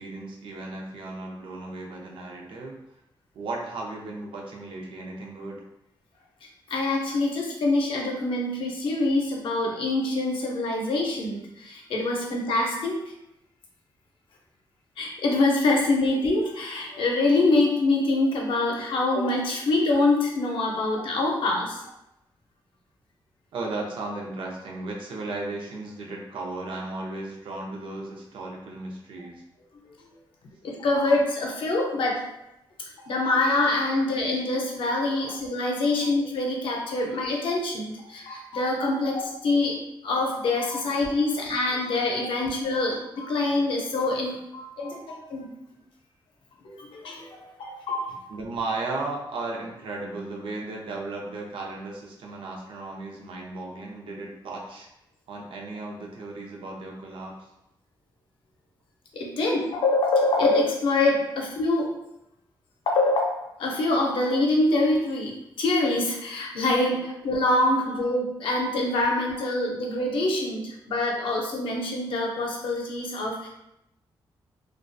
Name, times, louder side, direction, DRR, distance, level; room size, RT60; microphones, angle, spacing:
voice 1, 0.0-2.8 3.3-5.6 20.8-20.9 23.5-29.4 34.0-34.1 35.2-35.4 36.0-36.1 39.0-39.1 40.9-41.4 42.0-42.8 48.3-54.9 55.3-57.5 61.3-61.4 67.8-68.1 68.9-69.0, right 2 dB, 75° right, -1 dB, 0.5 m, -36 dB
voice 2, 6.7-13.0 15.0-21.8 30.6-32.2 33.0-39.8 40.0-45.5 46.6-48.2 59.1-61.9 62.9-63.3 63.6-73.5, left 2 dB, 75° left, 0 dB, 0.5 m, -25 dB
2.3 x 2.2 x 2.5 m, 0.85 s
wide cardioid pair, 160°, 9 cm